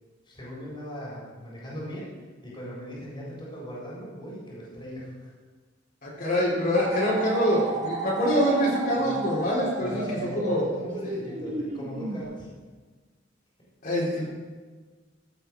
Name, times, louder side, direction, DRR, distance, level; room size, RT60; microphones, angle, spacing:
voice 1, 0.3-2.1 2.4-5.3 8.9-9.4 9.8-12.5, equal, 25° left, -5 dB, 3.9 m, -39 dB
voice 2, 6.0-10.6 13.8-14.2, equal, 50° left, -6 dB, 3.9 m, -25 dB
sound 1, 6.8-12.2, right 3 dB, 40° right, 1.4 m, -33 dB
15.0 x 8.1 x 4.7 m, 1.4 s
head